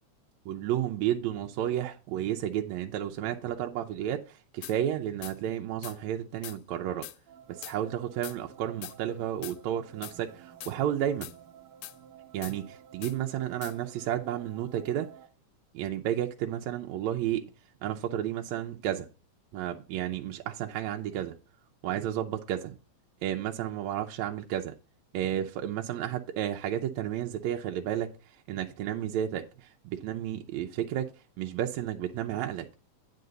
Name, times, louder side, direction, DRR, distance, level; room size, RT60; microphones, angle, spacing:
voice 1, 0.5-7.1 7.5-11.3 12.3-15.1 15.7-17.4 17.8-19.1 19.5-21.4 21.8-22.8 23.2-24.8 25.1-28.1 28.5-31.1 31.4-32.7, right 11 dB, 80° right, 1.8 m, -32 dB
sound 1, 4.6-4.8 5.2-5.4 5.8-6.0 6.4-6.6 7.0-7.2 7.6-7.8 8.2-8.4 8.8-9.0 9.4-9.6 10.0-10.2 10.6-10.7 11.2-11.3 11.8-12.0 12.4-12.6 13.0-13.2 13.6-13.7, left 16 dB, 80° left, 1.8 m, -42 dB
sound 2, 7.3-15.3, right 9 dB, 50° right, 1.2 m, -53 dB
9.4 x 3.9 x 6.7 m
omnidirectional pair, 3.5 m